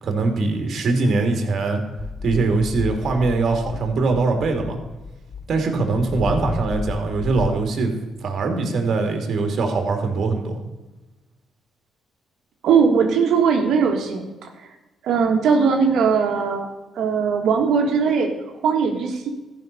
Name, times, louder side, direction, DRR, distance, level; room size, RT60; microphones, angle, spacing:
voice 1, 0.0-1.8 2.2-4.8 5.5-7.9 8.2-10.6, right 3 dB, 55° right, 4 dB, 2.6 m, -22 dB
sound 1, 2.0-7.5, left 5 dB, 30° left, 0.7 m, -33 dB
voice 2, 12.6-14.5 15.0-16.7 16.9-18.3 18.6-19.3, right 6 dB, 75° right, 2 dB, 1.7 m, -19 dB
14.0 x 5.8 x 6.8 m, 1.1 s
cardioid pair, 90°, 0 cm